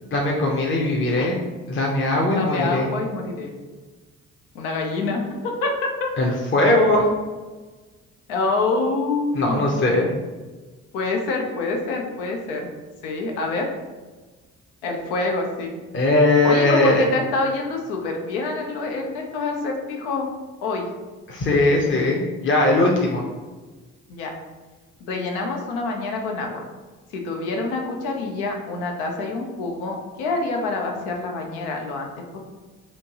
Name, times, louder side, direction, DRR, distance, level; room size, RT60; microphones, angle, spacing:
voice 1, 0.0-1.3 1.7-2.9 6.2-7.0 9.3-10.1 15.9-17.1 21.3-23.2, left 2 dB, 30° left, -2 dB, 0.8 m, -19 dB
voice 2, 2.3-3.5 4.5-6.1 6.6-6.8 8.3-9.8 10.9-12.7 13.0-13.7 14.8-15.7 16.4-20.3 20.6-20.9 24.1-24.3 25.0-26.6 27.1-32.4, left 3 dB, 80° left, 1 dB, 0.7 m, -26 dB
4.4 x 2.6 x 2.9 m, 1.3 s
hypercardioid pair, 45°, 38 cm